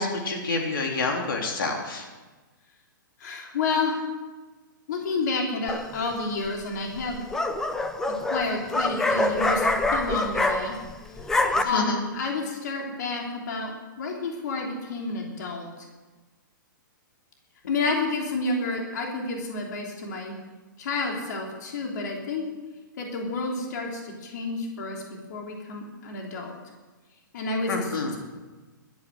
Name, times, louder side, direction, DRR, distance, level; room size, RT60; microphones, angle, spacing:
voice 1, 0.0-2.1 11.6-12.0 27.7-28.2, left 3 dB, 85° left, 1 dB, 3.3 m, -28 dB
voice 2, 3.2-4.0 4.9-7.2 8.3-10.7 11.6-15.7 17.7-20.3 20.8-22.4 23.0-25.0 25.3-26.5 27.3-27.9, left 3 dB, 55° left, 0 dB, 3.3 m, -30 dB
sound 1, 5.7-6.1 7.0-10.9 11.2-11.6, left 2 dB, 5° left, 0.6 m, -25 dB
13.0 x 11.5 x 7.9 m, 1.3 s
hypercardioid pair, 165°, 11 cm